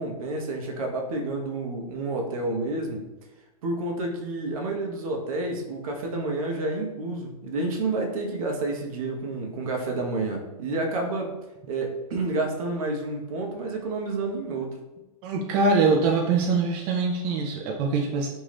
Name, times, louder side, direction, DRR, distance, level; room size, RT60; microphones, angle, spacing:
voice 1, 0.0-3.0 3.6-11.3 11.7-14.7, right 2 dB, 65° right, 2 dB, 0.7 m, -29 dB
voice 2, 15.2-18.3, right 4 dB, 35° right, 0 dB, 0.4 m, -23 dB
2.6 x 2.3 x 3.2 m, 1.0 s
hypercardioid pair, 130°, 19 cm